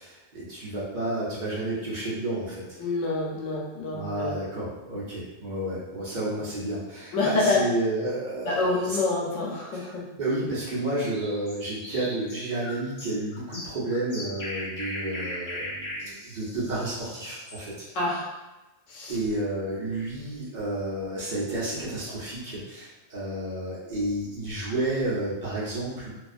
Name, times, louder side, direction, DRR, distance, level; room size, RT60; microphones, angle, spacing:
voice 1, 0.0-2.7 3.9-9.0 9.7-9.9 10.2-17.7 19.1-26.1, right 1 dB, 45° right, -8 dB, 0.8 m, -31 dB
voice 2, 2.8-4.3 7.1-7.6 8.4-10.0 17.9-18.3 18.9-19.2, left 3 dB, 85° left, -2 dB, 1.0 m, -27 dB
sound 1, 11.0-17.6, left 1 dB, 40° left, 0.4 m, -38 dB
2.5 x 2.3 x 2.4 m, 1.1 s
omnidirectional pair, 1.3 m